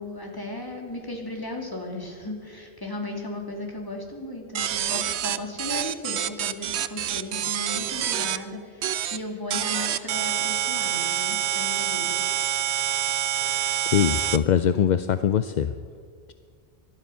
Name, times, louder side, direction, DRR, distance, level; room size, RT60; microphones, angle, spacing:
voice 1, 0.0-12.3, left 2 dB, 20° left, 1 dB, 2.4 m, -36 dB
sound 1, 4.5-8.4 8.8-9.2 9.5-14.4, right 10 dB, 85° right, 0.9 m, -27 dB
voice 2, 13.9-15.7, left 9 dB, 55° left, 12 dB, 0.5 m, -22 dB
19.0 x 12.0 x 5.6 m, 2.1 s
omnidirectional pair, 1.1 m